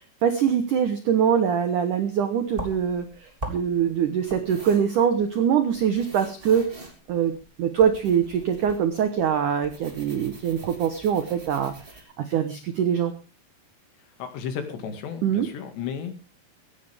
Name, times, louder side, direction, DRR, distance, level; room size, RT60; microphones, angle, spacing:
voice 1, 0.2-6.6 7.1-7.3 7.6-13.1 15.2-15.5, right 8 dB, 85° right, 9 dB, 1.7 m, -23 dB
sound 1, 2.5-12.0, right 1 dB, 15° right, 2.6 m, -42 dB
voice 2, 14.2-16.1, left 7 dB, 65° left, 7 dB, 4.1 m, -33 dB
17.0 x 15.5 x 3.5 m, 0.32 s
omnidirectional pair, 5.5 m